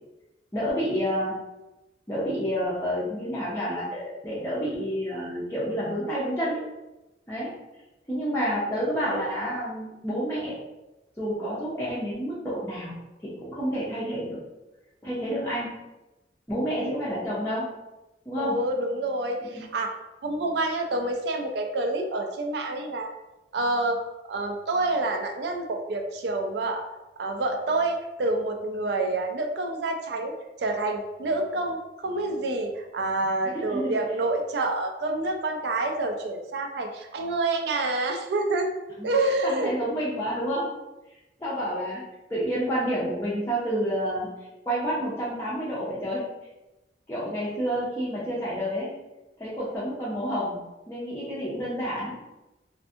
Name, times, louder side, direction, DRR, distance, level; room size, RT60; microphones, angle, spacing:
voice 1, 0.5-1.4 2.1-6.6 7.3-7.6 8.1-10.6 11.2-13.0 13.2-14.4 15.0-15.8 16.5-17.7 18.3-18.6 19.5-19.6 33.5-34.0 39.0-39.1 39.4-40.7 41.4-42.0 42.3-44.3 44.6-46.3 47.1-48.9 49.4-50.6 50.9-52.2, equal, 15° left, -9 dB, 0.5 m, -29 dB
voice 2, 18.4-20.0 20.2-23.1 23.5-24.0 24.3-26.9 27.2-30.3 30.6-38.7 39.0-39.7, right 2 dB, 60° right, 3 dB, 0.4 m, -27 dB
2.6 x 2.5 x 2.4 m, 1.0 s
head